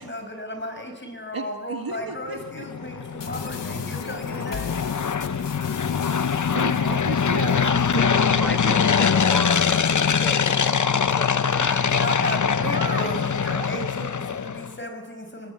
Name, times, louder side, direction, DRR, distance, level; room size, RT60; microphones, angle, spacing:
voice 1, 0.0-4.7 11.5-15.5, left 1 dB, 25° left, 6 dB, 5.8 m, -34 dB
voice 2, 1.3-2.7 6.5-9.1 12.3-13.3 13.5-13.9, right 4 dB, 55° right, 5 dB, 2.1 m, -34 dB
sound 1, 2.4-14.7, left 6 dB, 45° left, 0.9 m, -23 dB
sound 2, 3.2-8.2, left 5 dB, 80° left, 1.6 m, -39 dB
voice 3, 7.9-11.9, equal, 5° left, 8 dB, 4.4 m, -35 dB
25.5 x 19.0 x 8.4 m, 1.2 s
cardioid pair, 60°, 42 cm